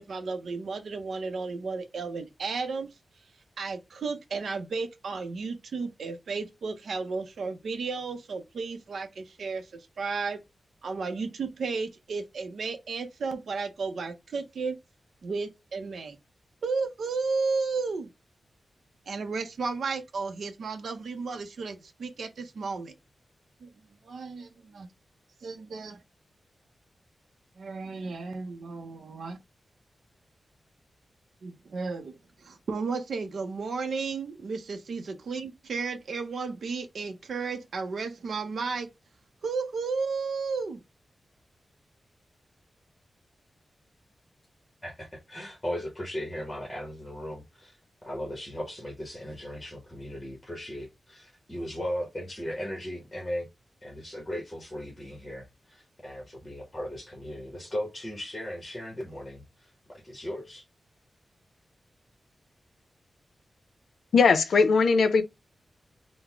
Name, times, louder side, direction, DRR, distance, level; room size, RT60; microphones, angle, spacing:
voice 1, 0.0-2.9 3.6-10.4 10.8-14.8 15.2-16.2 16.6-18.1 19.1-22.9 23.6-23.7 24.0-24.9 25.4-26.0 27.6-29.4 31.4-38.9 39.4-40.8, right 4 dB, 70° right, 0.6 m, -33 dB
voice 2, 44.8-47.8 48.0-53.5 53.8-59.4 60.0-60.6, equal, 15° left, 0.9 m, -37 dB
voice 3, 64.1-65.2, left 5 dB, 70° left, 0.5 m, -20 dB
3.9 x 2.0 x 4.4 m
wide cardioid pair, 170°, 0 cm